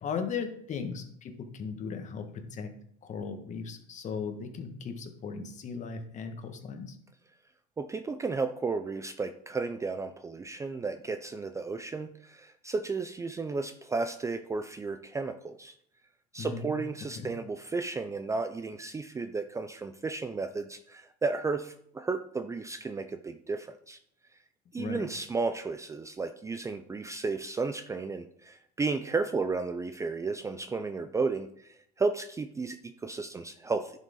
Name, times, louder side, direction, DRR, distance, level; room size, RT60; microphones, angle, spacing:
voice 1, 0.0-2.7 3.0-7.0 16.4-16.7 17.1-17.3 24.8-25.1, left 5 dB, 40° left, 6 dB, 1.6 m, -37 dB
voice 2, 7.8-15.7 16.3-24.0 24.7-33.9, right 4 dB, 15° right, 9 dB, 0.5 m, -33 dB
10.5 x 6.5 x 3.8 m, 0.67 s
cardioid pair, 125°, 20 cm